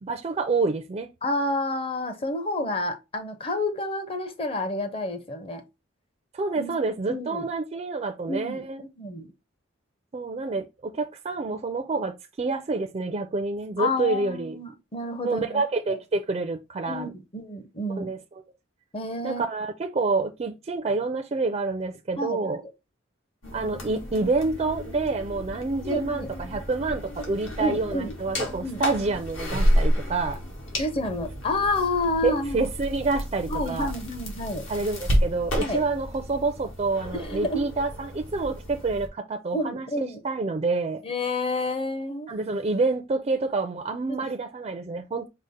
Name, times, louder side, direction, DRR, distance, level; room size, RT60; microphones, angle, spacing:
voice 1, 0.0-1.1 6.3-8.8 10.1-14.6 15.2-17.1 18.0-18.2 19.2-22.6 23.5-30.4 32.2-33.9 34.7-39.9 40.2-41.0 42.3-45.3, right 3 dB, 30° right, 0.4 m, -28 dB
voice 2, 1.2-5.6 6.6-6.8 7.1-7.5 8.3-9.3 13.8-15.6 15.9-16.0 16.9-18.1 18.9-19.4 22.2-22.7 25.8-26.3 27.6-28.1 28.6-28.8 30.8-32.7 33.5-34.6 35.5-35.8 37.2-37.7 39.5-40.2 41.0-42.3 44.1-44.3, left 2 dB, 30° left, 0.7 m, -29 dB
sound 1, 23.4-39.1, equal, 70° left, 1.5 m, -30 dB
5.0 x 2.1 x 4.0 m
head